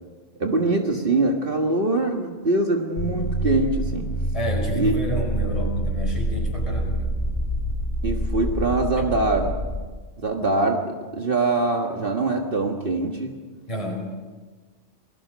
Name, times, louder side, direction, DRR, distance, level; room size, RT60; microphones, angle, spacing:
voice 1, 0.4-4.1 4.8-4.9 8.0-9.6 10.2-13.4, right 2 dB, 45° right, 2 dB, 1.8 m, -23 dB
sound 1, 3.0-9.8, right 1 dB, 50° left, 5.6 m, -26 dB
voice 2, 4.3-7.1 9.0-9.1 13.7-14.1, left 1 dB, 25° left, 1 dB, 5.2 m, -30 dB
28.5 x 20.0 x 5.2 m, 1.4 s
omnidirectional pair, 1.3 m